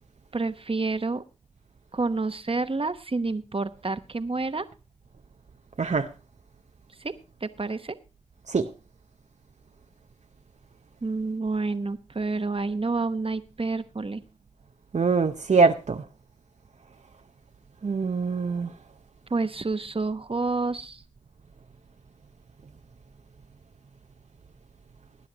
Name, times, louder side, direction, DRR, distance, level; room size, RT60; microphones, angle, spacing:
voice 1, 0.3-1.2 1.9-4.7 7.0-7.2 7.4-8.0 11.0-14.2 19.3-21.0, right 3 dB, 50° right, 0.9 m, -29 dB
voice 2, 5.8-6.1 8.5-8.7 14.9-16.0 17.8-18.7, right 4 dB, 80° right, 0.7 m, -23 dB
19.5 x 10.5 x 2.9 m
wide cardioid pair, 50°, 12 cm